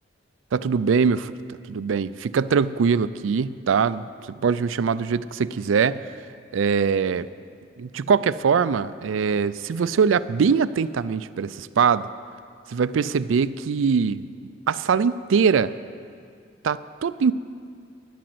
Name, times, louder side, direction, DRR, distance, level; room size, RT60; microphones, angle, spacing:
voice 1, 0.5-1.3 1.7-4.0 4.4-6.0 6.5-7.3 7.8-12.1 12.7-14.2 14.7-15.7 16.6-17.3, right 6 dB, 90° right, 16 dB, 0.4 m, -22 dB
11.5 x 10.5 x 7.8 m, 2.2 s
head